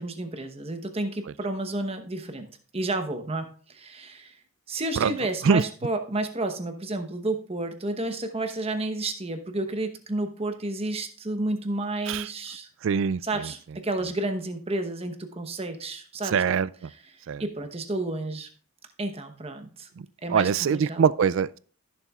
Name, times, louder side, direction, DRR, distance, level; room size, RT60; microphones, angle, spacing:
voice 1, 0.0-4.4 4.7-12.7 13.2-16.4 17.1-18.5 19.0-19.9 20.2-21.1, right 2 dB, 25° right, 1.0 m, -31 dB
voice 2, 12.8-13.5 16.3-16.7 17.3-17.4 20.0-21.6, right 6 dB, 60° right, 0.3 m, -23 dB
15.0 x 7.0 x 2.4 m
head